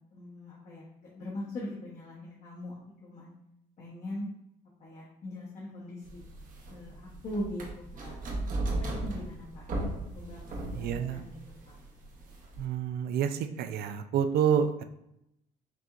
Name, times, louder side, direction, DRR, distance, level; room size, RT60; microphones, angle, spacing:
voice 1, 0.1-3.3 3.8-4.3 4.8-6.2 6.7-7.7 7.9-9.6 10.1-11.3 11.7-11.8, left 1 dB, 50° left, -5 dB, 1.2 m, -41 dB
sound 1, 6.1-12.7, right 2 dB, 50° right, 1.0 m, -36 dB
voice 2, 10.7-11.2 12.6-14.8, right 8 dB, 65° right, 8 dB, 0.4 m, -28 dB
5.9 x 2.8 x 2.5 m, 0.80 s
cardioid pair, 110°, 17 cm